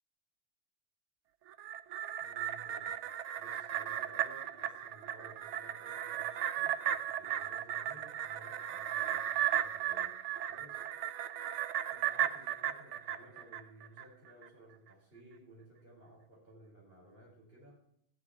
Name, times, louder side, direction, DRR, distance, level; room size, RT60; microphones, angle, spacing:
sound 1, 1.5-14.0 14.4-14.5, right 11 dB, 80° right, 1.0 m, -36 dB
voice 1, 2.2-3.0 3.4-10.2 10.5-10.8 11.9-17.8, right 1 dB, 55° right, -3 dB, 4.9 m, -57 dB
13.0 x 9.0 x 4.4 m, 0.68 s
omnidirectional pair, 1.2 m